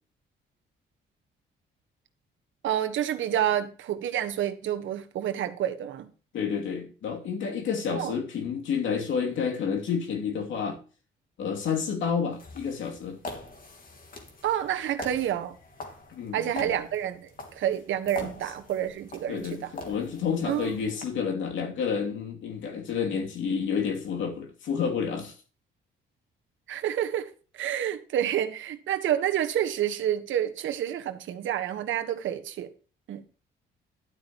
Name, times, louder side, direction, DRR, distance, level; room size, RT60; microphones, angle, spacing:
voice 1, 2.6-6.1 7.9-8.1 14.4-15.5 16.3-19.7 20.4-20.7 26.7-32.7 33.1-33.2, right 10 dB, 75° right, 1.3 m, -29 dB
voice 2, 6.3-10.8 11.4-13.2 16.1-16.7 18.2-18.3 19.3-25.3, left 6 dB, 75° left, 2.7 m, -30 dB
sound 1, 12.3-21.0, left 2 dB, 45° left, 3.0 m, -44 dB
12.0 x 8.9 x 3.0 m
cardioid pair, 90°, 20 cm